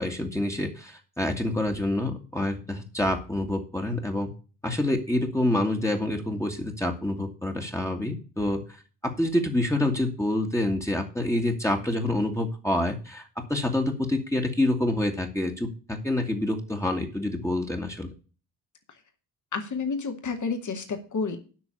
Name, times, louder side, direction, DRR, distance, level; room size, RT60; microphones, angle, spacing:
voice 1, 0.0-4.3 4.6-18.1, left 1 dB, 5° left, 2 dB, 2.0 m, -27 dB
voice 2, 19.5-21.4, left 4 dB, 35° left, 6 dB, 2.2 m, -30 dB
10.0 x 6.2 x 7.1 m, 0.36 s
figure-of-eight pair, 40°, 48 cm